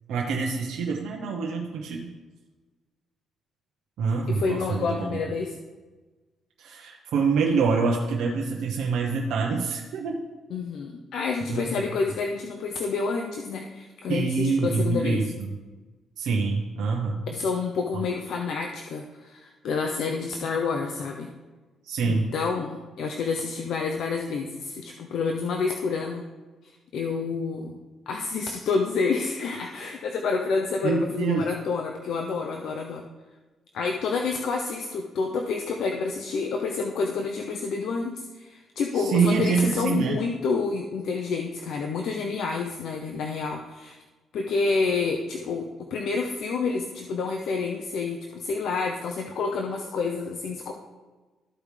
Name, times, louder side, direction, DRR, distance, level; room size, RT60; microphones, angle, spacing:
voice 1, 0.1-2.1 4.0-5.2 6.6-10.2 11.5-11.7 14.1-15.5 16.2-17.2 21.8-22.3 30.8-31.6 38.9-40.2, right 4 dB, 75° right, -1 dB, 0.9 m, -26 dB
voice 2, 4.3-5.6 10.5-15.2 17.3-21.3 22.0-26.2 26.6-27.8 28.1-33.0 33.7-44.0 44.3-50.7, left 4 dB, 75° left, 2 dB, 0.7 m, -29 dB
13.5 x 4.9 x 3.3 m, 1.3 s
cardioid pair, 90°, 0 cm